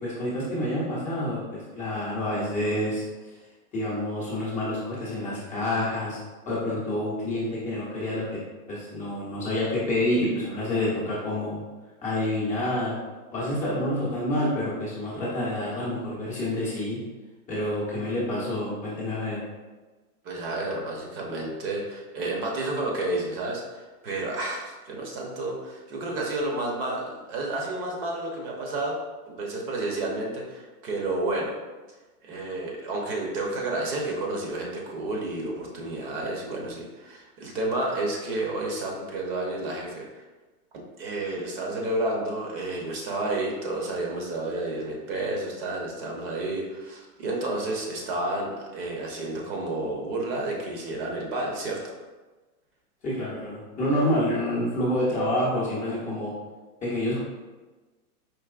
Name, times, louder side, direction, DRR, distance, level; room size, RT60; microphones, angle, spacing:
voice 1, 0.0-3.0 3.7-6.2 6.5-8.2 8.7-11.6 12.0-12.9 13.3-17.0 17.5-19.4 53.0-56.3 56.8-57.2, left 1 dB, 15° left, -7 dB, 0.7 m, -28 dB
voice 2, 20.2-29.0 29.3-31.6 32.2-40.1 40.7-51.8, right 2 dB, 40° right, -1 dB, 0.8 m, -31 dB
4.6 x 2.9 x 2.4 m, 1.2 s
hypercardioid pair, 140°, 45 cm